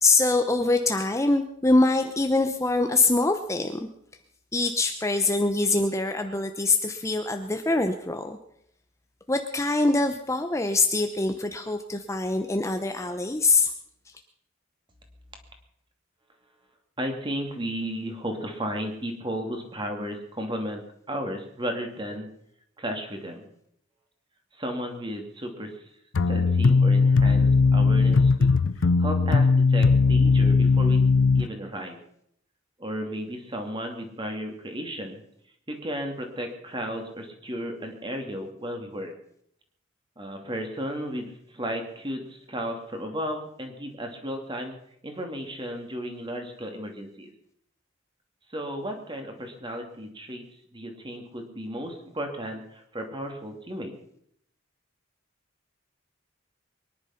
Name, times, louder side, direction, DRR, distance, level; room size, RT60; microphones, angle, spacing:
voice 1, 0.0-3.8 4.5-8.4 9.3-13.7, left 3 dB, 15° left, 6 dB, 0.8 m, -24 dB
voice 2, 17.0-20.8 21.1-22.3 22.8-23.5 24.5-25.8 26.3-28.5 28.8-31.1 31.3-32.0 32.8-35.2 35.7-39.1 40.2-44.7 45.0-47.3 48.5-50.4 50.7-53.9, equal, 25° right, 4 dB, 2.6 m, -34 dB
sound 1, 26.1-31.5, left 4 dB, 70° left, 0.5 m, -19 dB
23.0 x 10.5 x 5.8 m, 0.72 s
head